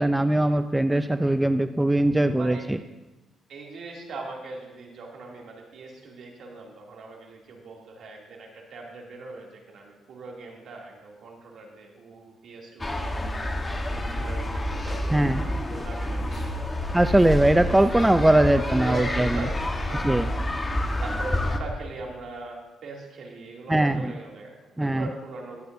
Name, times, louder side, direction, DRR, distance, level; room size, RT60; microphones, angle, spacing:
voice 1, 0.0-2.8 15.1-15.4 16.9-19.3 19.9-20.3 23.7-24.1 24.8-25.1, right 1 dB, 10° right, 9 dB, 0.4 m, -21 dB
voice 2, 2.4-2.9 3.5-13.5 13.8-17.0 18.0-20.5 21.0-25.7, right 3 dB, 65° right, -1 dB, 2.6 m, -40 dB
sound 1, 12.8-21.6, left 1 dB, 20° left, 1.2 m, -29 dB
21.5 x 8.6 x 2.7 m, 1.1 s
cardioid pair, 90°, 0 cm